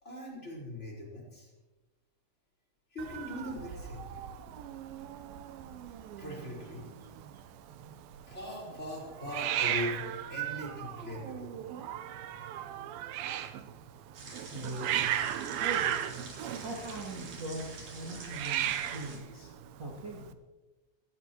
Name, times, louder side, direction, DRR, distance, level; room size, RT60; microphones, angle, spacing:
voice 1, 0.0-1.5 2.9-4.2 6.2-7.1 7.3-7.4 8.2-11.6 12.5-12.6, left 1 dB, 20° left, -2 dB, 4.5 m, -41 dB
Hiss, 3.0-20.3, right 11 dB, 75° right, 2.6 m, -37 dB
sound 1, 14.1-19.2, right 3 dB, 55° right, 4.7 m, -47 dB
voice 2, 14.5-15.1 15.5-15.9 16.6-19.5 19.8-20.3, right 2 dB, 35° right, -6 dB, 2.7 m, -40 dB
21.5 x 17.0 x 3.0 m, 1.1 s
omnidirectional pair, 4.3 m